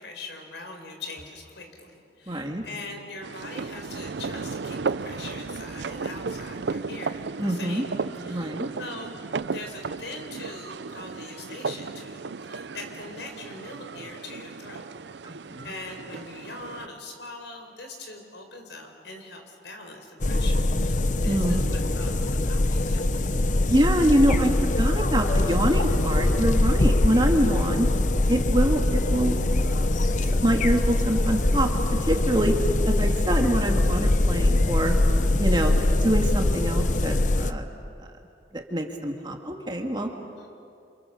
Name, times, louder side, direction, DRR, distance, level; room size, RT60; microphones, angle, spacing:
voice 1, 0.0-7.9 8.2-9.1 9.5-14.9 15.2-23.3 40.4-40.5, left 2 dB, 75° left, 4 dB, 4.6 m, -42 dB
voice 2, 2.3-2.6 7.4-7.8 8.3-8.7 15.2-15.7 21.3-21.7 23.7-27.9 28.3-29.9 30.4-31.7 32.0-32.5 32.9-34.9 35.4-37.7 38.5-40.1, right 1 dB, 25° right, 2 dB, 2.2 m, -25 dB
sound 1, 3.2-16.9, right 4 dB, 75° right, 0.6 m, -35 dB
sound 2, 20.2-37.5, left 2 dB, 45° left, 0.8 m, -23 dB
29.0 x 27.5 x 7.1 m, 2.5 s
head